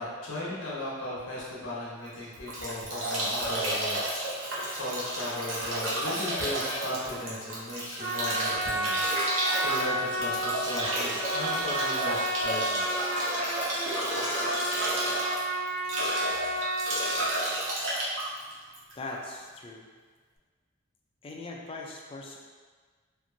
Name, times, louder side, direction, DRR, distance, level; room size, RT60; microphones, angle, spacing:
voice 1, 0.0-4.0 4.3-13.1, left 1 dB, 65° left, -7 dB, 0.9 m, -37 dB
Bathtub (filling or washing) / Drip / Trickle dribble, 2.1-19.3, right 1 dB, 75° right, 0.7 m, -32 dB
Trumpet, 8.0-17.5, right 1 dB, 50° right, 1.0 m, -31 dB
voice 2, 19.0-19.9 21.2-22.4, left 2 dB, 25° left, -1 dB, 0.3 m, -40 dB
2.9 x 2.4 x 2.6 m, 1.5 s
head